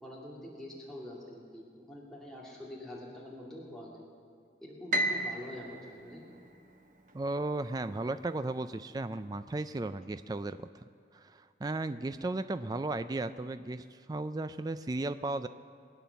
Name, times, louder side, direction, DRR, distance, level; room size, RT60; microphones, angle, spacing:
voice 1, 0.0-4.0 4.6-6.2, left 1 dB, 5° left, -6 dB, 2.5 m, -45 dB
Piano, 4.9-7.2, right 1 dB, 45° right, 1.0 m, -34 dB
voice 2, 7.1-10.7 11.1-15.5, right 2 dB, 20° right, 11 dB, 0.3 m, -35 dB
22.5 x 9.3 x 6.9 m, 2.3 s
head